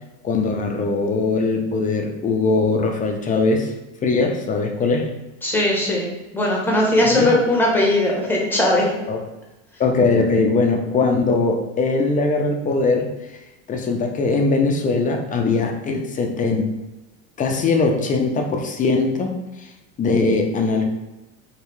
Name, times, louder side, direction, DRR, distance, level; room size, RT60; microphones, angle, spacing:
voice 1, 0.2-3.7 4.0-5.1 7.0-7.3 9.1-9.2 9.8-13.1 13.7-16.7 17.4-19.3 20.0-20.8, left 3 dB, 20° left, 3 dB, 0.5 m, -20 dB
voice 2, 5.4-6.1 6.3-8.9, left 1 dB, 5° left, -2 dB, 0.9 m, -19 dB
3.2 x 2.8 x 3.0 m, 1.0 s
supercardioid pair, 110°, 38 cm